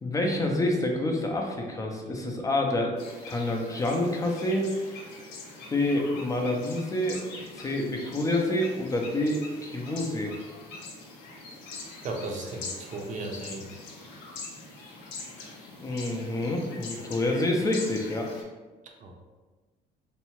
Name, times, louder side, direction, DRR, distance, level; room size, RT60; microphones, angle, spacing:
voice 1, 0.0-2.9 3.3-4.7 5.7-7.2 7.5-10.3 15.8-18.3, left 1 dB, 20° left, 2 dB, 0.4 m, -27 dB
sound 1, 3.0-18.4, left 3 dB, 85° left, 0.6 m, -43 dB
voice 2, 12.0-13.6 19.0-19.2, right 2 dB, 45° right, 1 dB, 0.5 m, -35 dB
2.7 x 2.1 x 2.9 m, 1.3 s
cardioid pair, 110°, 17 cm